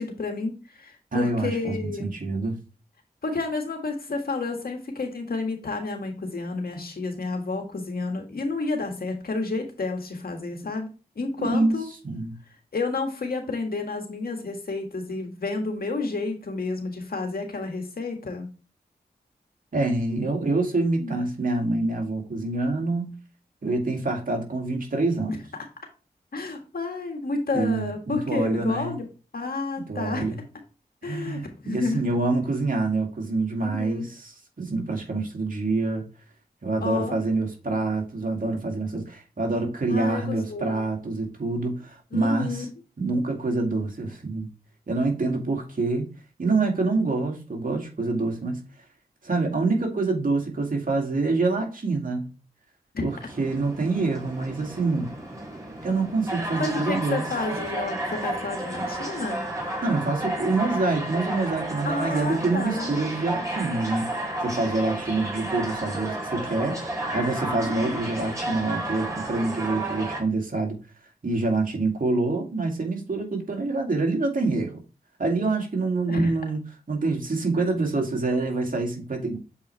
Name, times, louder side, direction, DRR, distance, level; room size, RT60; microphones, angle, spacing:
voice 1, 0.0-2.1 3.2-10.9 11.1-11.9 12.7-18.5 21.0-21.2 25.3-25.6 26.3-29.0 29.3-30.3 31.0-32.0 33.6-34.0 36.8-37.2 39.9-40.7 42.1-42.6 52.9-53.1 56.6-59.6 61.8-62.9 67.5-68.1 73.6-73.7 76.1-76.3, left 3 dB, 65° left, 1.7 m, -30 dB
voice 2, 1.1-2.6 11.4-11.8 12.0-12.4 19.7-23.2 23.6-25.3 27.5-28.9 29.8-30.4 31.0-36.1 36.6-42.7 43.0-44.5 44.9-46.1 46.4-48.6 49.2-52.3 53.0-53.1 53.4-55.1 55.8-57.2 59.8-70.8 71.2-74.7 75.2-76.6 76.9-79.4, right 3 dB, 55° right, 2.2 m, -26 dB
sound 1, 53.1-70.2, right 1 dB, 20° right, 3.5 m, -32 dB
7.3 x 4.6 x 3.1 m
cardioid pair, 45°, 17 cm